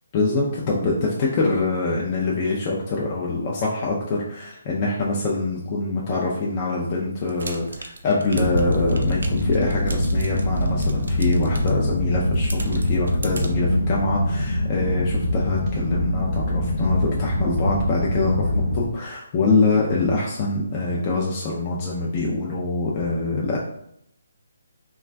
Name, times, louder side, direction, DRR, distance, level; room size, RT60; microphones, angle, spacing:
voice 1, 0.1-23.6, left 3 dB, 25° left, -4 dB, 0.4 m, -24 dB
sound 1, 7.2-13.5, right 2 dB, 80° right, 0.5 m, -40 dB
sound 2, 8.3-18.9, left 1 dB, 85° left, 0.8 m, -24 dB
2.4 x 2.2 x 3.3 m, 0.74 s
hypercardioid pair, 165°, 0 cm